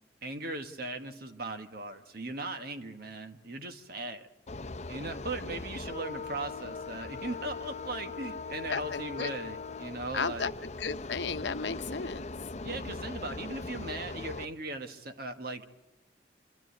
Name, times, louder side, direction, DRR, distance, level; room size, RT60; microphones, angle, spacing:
voice 1, 0.2-4.3 4.9-10.5 12.6-15.7, right 2 dB, 55° right, 7 dB, 1.5 m, -38 dB
sound 1, 4.5-14.5, left 3 dB, 40° left, 0.7 m, -40 dB
voice 2, 8.7-9.3 10.1-12.2, left 5 dB, 75° left, 11 dB, 0.8 m, -34 dB
26.0 x 13.0 x 9.6 m, 1.0 s
head